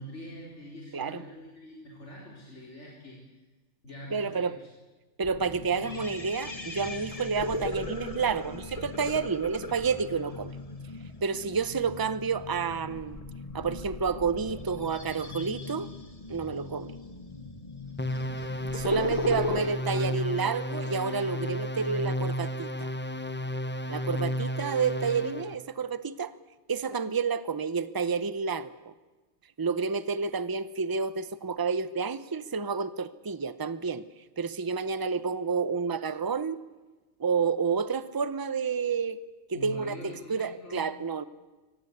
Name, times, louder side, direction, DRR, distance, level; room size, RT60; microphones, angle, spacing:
voice 1, 0.0-3.2 3.8-4.7 19.0-20.1 39.5-40.8, equal, 75° left, -3 dB, 4.6 m, -44 dB
voice 2, 4.1-4.5 5.2-10.5 11.2-13.2 13.5-15.9 16.3-16.9 18.7-22.9 23.9-26.3 26.7-28.7 29.6-34.0 34.4-36.6 37.2-39.2 39.5-41.3, right 5 dB, 20° right, 14 dB, 0.8 m, -30 dB
sound 1, 5.2-19.6, left 2 dB, 30° left, 1.7 m, -38 dB
sound 2, 18.0-25.5, equal, 10° left, 0.9 m, -33 dB
24.0 x 19.5 x 8.2 m, 1.2 s
omnidirectional pair, 1.2 m